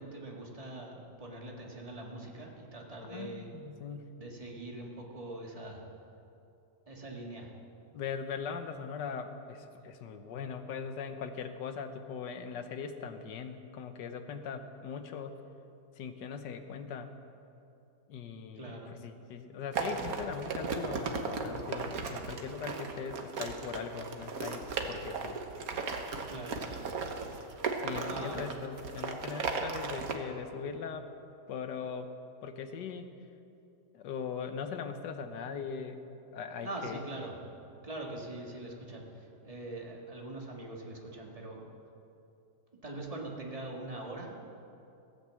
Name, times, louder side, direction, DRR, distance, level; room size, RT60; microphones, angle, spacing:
voice 1, 0.0-3.5 4.1-5.8 6.9-7.5 18.6-18.9 26.3-26.6 28.0-28.5 36.6-37.4 37.8-41.6 42.8-44.4, right 2 dB, 20° right, -1 dB, 1.8 m, -42 dB
voice 2, 3.1-4.2 7.9-15.4 16.0-17.1 18.1-25.4 27.8-31.1 31.5-32.1 32.4-33.1 33.9-36.0 36.3-37.0, left 6 dB, 75° left, 8 dB, 1.5 m, -40 dB
sound 1, 19.7-30.1, right 4 dB, 60° right, 1.4 m, -36 dB
16.0 x 8.8 x 7.6 m, 2.7 s
omnidirectional pair, 1.9 m